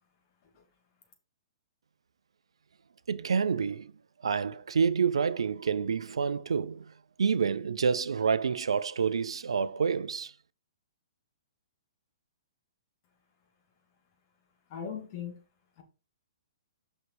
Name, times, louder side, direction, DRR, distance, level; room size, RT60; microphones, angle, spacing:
voice 1, 3.1-3.9 4.2-6.9 7.2-10.3, right 6 dB, 75° right, 0.5 m, -28 dB
voice 2, 14.7-15.4 15.8-15.9, left 7 dB, 45° left, 2.7 m, -39 dB
6.6 x 5.5 x 4.8 m
hypercardioid pair, 125°, 3 cm